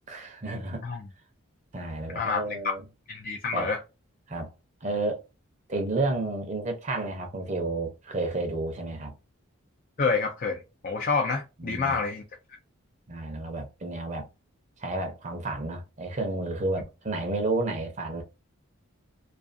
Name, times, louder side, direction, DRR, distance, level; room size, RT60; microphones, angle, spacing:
voice 1, 0.1-0.9 1.7-2.8 3.5-3.7 4.3-4.5 4.8-5.2 5.7-9.1 11.6-12.0 13.1-14.3 14.8-18.2, right 2 dB, 35° right, 0.6 m, -31 dB
voice 2, 2.1-2.7 3.1-3.8 10.0-12.2, left 4 dB, 40° left, 0.4 m, -28 dB
2.4 x 2.3 x 2.5 m
head